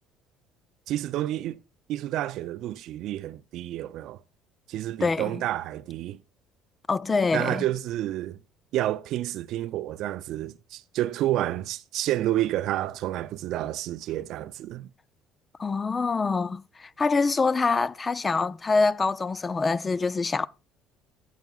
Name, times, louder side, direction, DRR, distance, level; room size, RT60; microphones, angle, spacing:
voice 1, 0.9-1.6 1.9-4.2 4.7-6.2 7.3-8.4 8.7-14.9, right 14 dB, 65° right, 0.4 m, -29 dB
voice 2, 5.0-5.4 6.9-7.7 15.6-20.5, left 4 dB, 25° left, 0.4 m, -25 dB
15.5 x 7.1 x 2.4 m
supercardioid pair, 85°, 0 cm